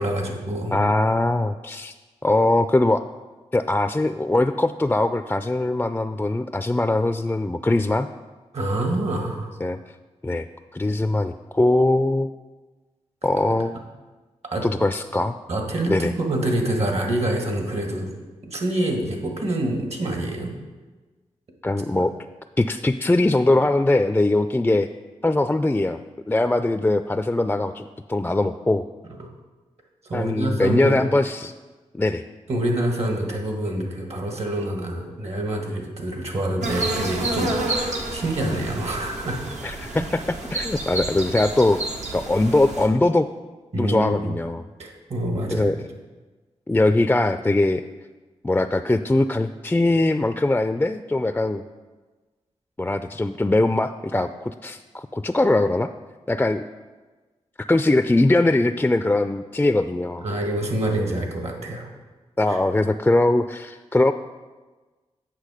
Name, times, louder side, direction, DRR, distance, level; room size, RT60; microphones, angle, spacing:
voice 1, 0.0-0.8 8.5-9.5 14.5-14.7 15.5-18.1 18.4-20.5 21.9-22.0 29.2-29.3 30.1-31.0 32.5-39.4 43.7-44.3 44.8-45.7 60.2-61.9 62.5-62.6, right 1 dB, 65° right, 2 dB, 1.8 m, -26 dB
voice 2, 0.7-1.9 2.2-3.1 3.5-8.1 9.6-9.8 10.2-10.5 10.7-12.3 13.2-13.8 14.6-15.4 15.9-16.1 21.6-22.1 22.6-24.9 25.2-26.0 26.3-28.9 30.1-31.5 31.9-32.2 39.6-41.8 42.1-43.3 43.8-44.6 45.5-45.8 46.7-47.8 48.4-51.6 52.8-55.9 56.3-56.6 57.6-60.3 62.4-64.1, left 2 dB, 15° left, 10 dB, 0.3 m, -21 dB
sound 1, 36.6-42.9, right 2 dB, 80° right, 1.2 m, -29 dB
8.4 x 6.0 x 4.9 m, 1.3 s
cardioid pair, 50°, 12 cm